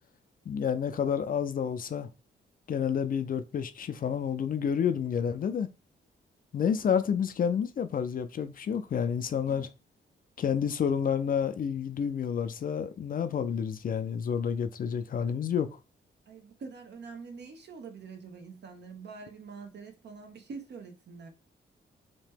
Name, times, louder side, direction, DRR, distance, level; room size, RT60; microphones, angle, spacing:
voice 1, 0.5-2.1 2.7-5.7 6.5-9.7 10.4-15.7, left 7 dB, 45° left, 0.4 m, -29 dB
voice 2, 16.3-21.3, right 5 dB, 60° right, 0.7 m, -45 dB
2.9 x 2.2 x 3.3 m
cardioid pair, 75°, 20 cm